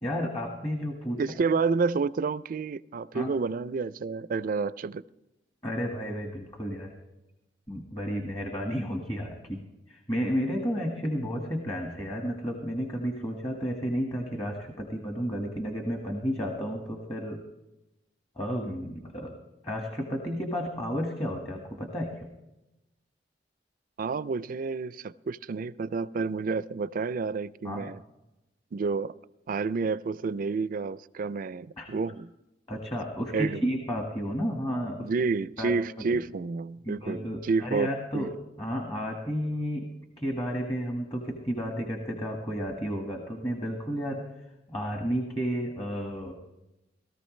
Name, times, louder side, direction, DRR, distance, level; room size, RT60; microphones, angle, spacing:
voice 1, 0.0-1.4 3.1-3.3 5.6-6.9 7.7-9.6 9.9-17.4 18.3-19.3 19.6-22.3 27.6-27.9 31.8-31.9 32.7-35.1 35.6-35.7 36.8-38.3 38.6-39.9 40.2-44.2 44.7-46.3, equal, 25° left, 1.6 m, -32 dB
voice 2, 1.2-5.0 24.0-28.0 28.7-29.1 29.5-32.3 33.3-33.7 35.0-38.3, right 4 dB, 50° right, 0.4 m, -29 dB
18.5 x 13.5 x 3.2 m
head